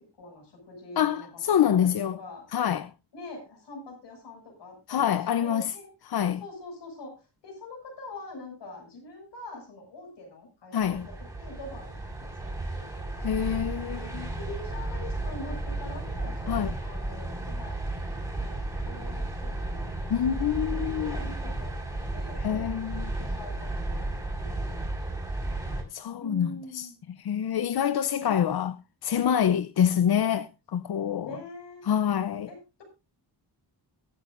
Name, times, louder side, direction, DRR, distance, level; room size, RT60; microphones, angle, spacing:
voice 1, 0.2-2.4 3.1-5.9 6.4-13.7 13.9-14.1 14.4-19.9 20.7-25.6 26.2-27.0 28.2-28.6 31.2-31.9 32.5-32.8, left 2 dB, 80° left, 6.6 m, -44 dB
voice 2, 1.0-2.2 2.5-2.9 4.9-5.7 6.1-6.4 10.7-11.1 13.2-14.2 16.5-16.7 20.1-21.2 22.4-23.1 25.9-26.9 27.2-28.7 29.0-31.4 31.8-32.5, left 9 dB, 60° left, 0.7 m, -26 dB
sound 1, 10.8-25.8, right 2 dB, 10° right, 4.7 m, -33 dB
23.0 x 8.9 x 2.5 m
wide cardioid pair, 135°, 41 cm